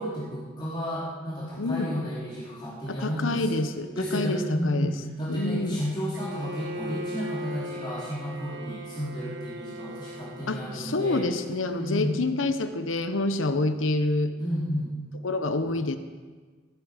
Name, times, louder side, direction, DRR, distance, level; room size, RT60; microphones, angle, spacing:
voice 1, 0.0-3.5 4.0-11.3 11.6-12.2 14.4-15.0, equal, 25° left, -8 dB, 3.4 m, -32 dB
voice 2, 1.6-1.9 2.9-4.9 5.3-5.8 10.5-14.3 15.2-16.0, left 2 dB, 85° left, 9 dB, 1.0 m, -27 dB
Bowed string instrument, 6.1-10.9, equal, 60° right, 1.4 m, -39 dB
16.0 x 11.0 x 5.1 m, 1.4 s
head